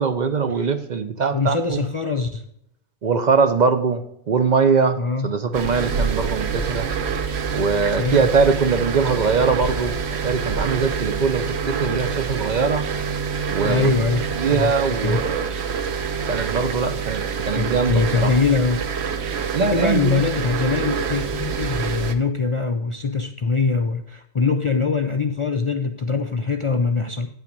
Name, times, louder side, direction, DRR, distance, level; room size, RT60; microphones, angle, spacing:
voice 1, 0.0-1.8 3.0-6.9 7.5-10.0 10.2-12.9 13.5-13.9 14.4-15.4 16.3-18.3 19.5-20.2, right 5 dB, 50° right, 9 dB, 0.6 m, -22 dB
voice 2, 1.3-2.4 5.0-5.4 7.9-8.3 13.6-14.7 15.0-15.2 17.6-18.8 19.6-27.3, left 4 dB, 45° left, 6 dB, 0.4 m, -23 dB
sound 1, 5.5-22.1, right 6 dB, 85° right, 1.1 m, -26 dB
9.2 x 5.8 x 5.2 m, 0.73 s
omnidirectional pair, 1.1 m